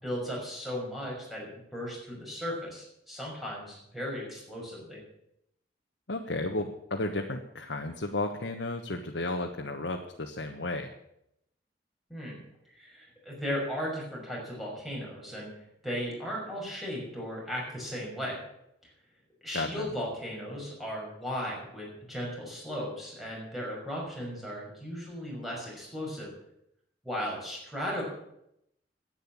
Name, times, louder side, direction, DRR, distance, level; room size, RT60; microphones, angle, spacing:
voice 1, 0.0-5.0 12.1-12.4 12.7-15.5 15.8-18.4 19.4-26.3 27.0-28.0, equal, ahead, -4 dB, 5.8 m, -36 dB
voice 2, 6.1-10.9 19.5-19.9, left 2 dB, 75° left, 2 dB, 1.3 m, -33 dB
11.0 x 9.1 x 9.9 m, 0.79 s
head